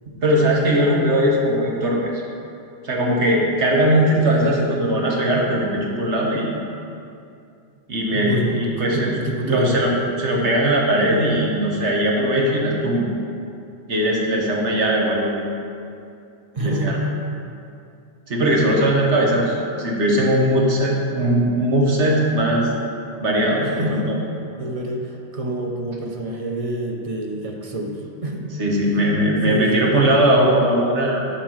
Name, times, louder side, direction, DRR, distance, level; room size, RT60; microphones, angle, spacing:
voice 1, 0.1-2.2 2.8-6.5 7.9-9.1 9.5-13.1 13.9-15.4 16.6-17.0 18.3-22.7 23.2-24.2 28.6-31.3, right 1 dB, 85° right, -2 dB, 1.6 m, -19 dB
voice 2, 8.1-9.8 16.5-17.0 23.6-24.1 24.6-28.5 29.5-29.9, right 1 dB, 35° right, 1 dB, 0.8 m, -27 dB
8.5 x 4.4 x 6.4 m, 2.5 s
omnidirectional pair, 1.1 m